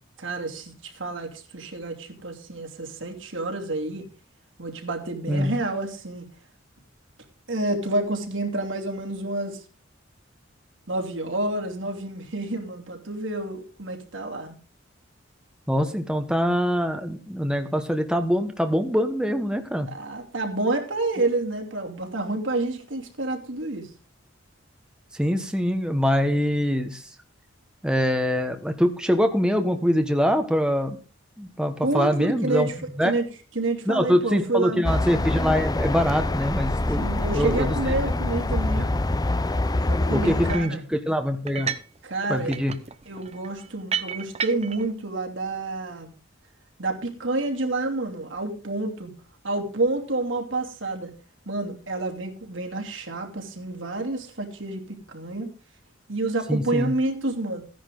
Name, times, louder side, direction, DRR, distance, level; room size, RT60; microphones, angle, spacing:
voice 1, 0.2-4.0 4.6-6.3 7.5-9.6 10.9-14.6 19.9-23.9 31.8-32.8 33.0-33.3 33.5-34.9 37.0-38.9 39.9-40.8 42.0-42.6 43.1-46.1 46.8-49.1 49.4-51.1 51.5-55.5 56.1-57.6, right 2 dB, 75° right, 2 dB, 2.9 m, -29 dB
voice 2, 15.7-19.9 25.2-27.0 27.8-31.0 31.4-32.7 33.0-33.1 33.9-37.1 37.3-37.7 38.7-38.9 40.1-41.7 42.3-42.7 56.5-56.9, equal, 5° right, 5 dB, 1.1 m, -24 dB
sound 1, 34.8-40.5, left 2 dB, 20° left, 0.6 m, -25 dB
sound 2, 40.5-40.8 41.5-42.0 42.2-44.9, right 7 dB, 35° right, 0.9 m, -32 dB
15.5 x 10.5 x 3.9 m, 0.34 s
head